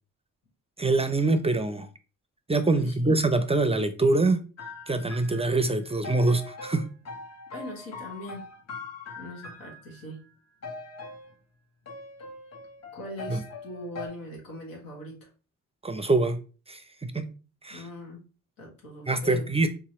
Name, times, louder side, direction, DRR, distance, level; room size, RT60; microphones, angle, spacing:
voice 1, 0.8-1.9 2.5-4.4 4.9-6.8 13.3-13.4 15.8-16.4 16.7-17.3 17.6-17.8 19.1-19.7, right 2 dB, 20° right, 0.4 m, -24 dB
voice 2, 2.7-3.2 7.5-8.5 9.1-10.2 12.9-15.3 17.7-18.2 18.6-19.5, left 1 dB, 90° left, 1.5 m, -41 dB
sound 1, 4.6-10.1 10.6-11.3 11.9-14.1, left 3 dB, 50° left, 0.9 m, -42 dB
3.6 x 3.0 x 2.9 m
cardioid pair, 60°, 34 cm